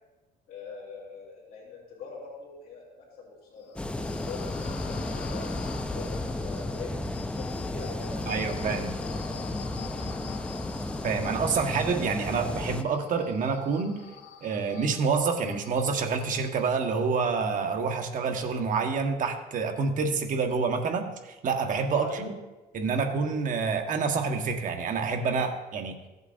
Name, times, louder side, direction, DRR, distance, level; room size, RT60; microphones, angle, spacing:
voice 1, 0.5-2.9 3.2-5.4 5.9-7.0 7.4-9.5 9.8-10.6 21.9-22.3, left 4 dB, 60° left, -6 dB, 2.9 m, -44 dB
sound 1, 3.6-17.0, left 8 dB, 90° left, 0.9 m, -45 dB
sound 2, 3.8-12.8, left 1 dB, 5° left, 0.4 m, -33 dB
voice 2, 8.3-8.9 11.0-14.0 14.4-22.3 22.7-26.0, right 5 dB, 50° right, 4 dB, 1.3 m, -27 dB
15.5 x 8.0 x 2.6 m, 1.1 s
cardioid pair, 110°, 17 cm